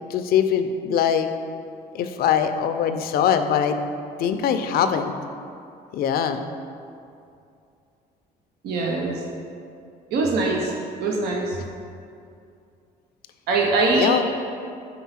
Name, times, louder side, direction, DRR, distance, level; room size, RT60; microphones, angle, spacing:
voice 1, 0.1-1.3 1.9-3.8 4.2-5.1 5.9-6.4 14.0-14.2, left 8 dB, 65° left, 8 dB, 0.5 m, -22 dB
voice 2, 8.6-9.2 10.1-10.7 11.0-11.6 13.5-14.2, right 3 dB, 75° right, -1 dB, 0.8 m, -22 dB
4.6 x 4.0 x 5.6 m, 2.5 s
cardioid pair, 110°, 17 cm